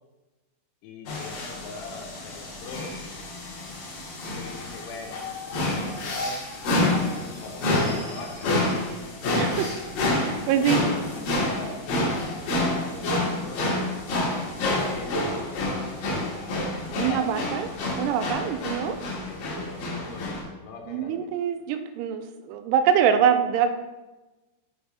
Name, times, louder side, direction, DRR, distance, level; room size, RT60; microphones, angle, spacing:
voice 1, 0.8-2.9 4.3-5.3 5.6-6.4 7.1-8.5 10.5-12.1 12.4-13.7 14.6-15.8 16.8-17.4 18.2-19.0 19.3-21.3, left 4 dB, 85° left, 3 dB, 2.9 m, -41 dB
sound 1, 1.1-20.4, left 2 dB, 65° left, 2.7 m, -28 dB
voice 2, 9.3-9.7 10.2-10.8 17.0-17.7 18.0-19.0 20.9-23.7, right 8 dB, 85° right, 7 dB, 2.7 m, -24 dB
6.3 x 3.4 x 5.5 m, 1.1 s
omnidirectional pair, 4.6 m